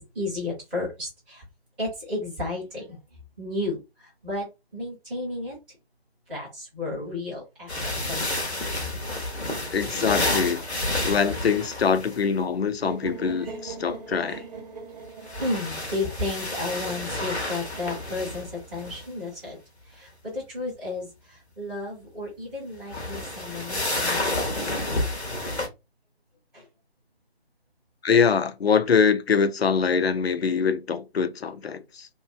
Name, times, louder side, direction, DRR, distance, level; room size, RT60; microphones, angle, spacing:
voice 1, 0.0-1.4 1.8-2.8 3.4-3.8 4.2-4.5 4.7-5.5 6.3-8.5 13.4-13.6 14.3-14.4 15.3-19.6 20.0-21.1 21.6-25.1 26.5-26.6, left 2 dB, ahead, 0.6 m, -33 dB
sound 1, 7.7-12.2 15.0-19.1 22.8-25.7, left 2 dB, 90° left, 1.2 m, -30 dB
voice 2, 9.7-10.6 11.0-14.4 28.0-32.1, left 6 dB, 70° left, 0.5 m, -23 dB
sound 2, 12.8-16.8, right 4 dB, 40° right, 0.9 m, -39 dB
3.0 x 2.4 x 3.3 m
figure-of-eight pair, 145°, 32 cm